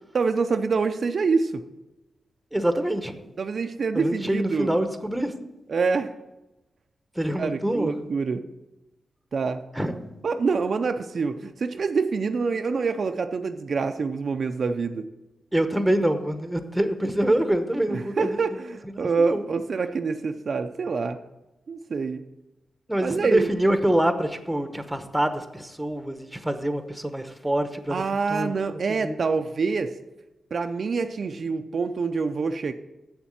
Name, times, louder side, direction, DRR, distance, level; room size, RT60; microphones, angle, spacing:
voice 1, 0.1-1.6 3.4-4.7 5.7-6.1 7.4-8.4 9.3-9.6 10.2-15.1 17.9-21.2 21.7-22.3 23.0-23.5 27.9-29.9 30.5-32.7, right 4 dB, 55° right, 7 dB, 0.5 m, -26 dB
voice 2, 2.5-3.2 3.9-5.3 7.1-7.9 9.7-9.9 15.5-18.4 18.9-19.4 22.9-28.0 28.3-28.5 29.0-29.2, right 1 dB, 5° right, 8 dB, 1.0 m, -25 dB
7.3 x 7.1 x 7.4 m, 0.99 s
cardioid pair, 90°, 0 cm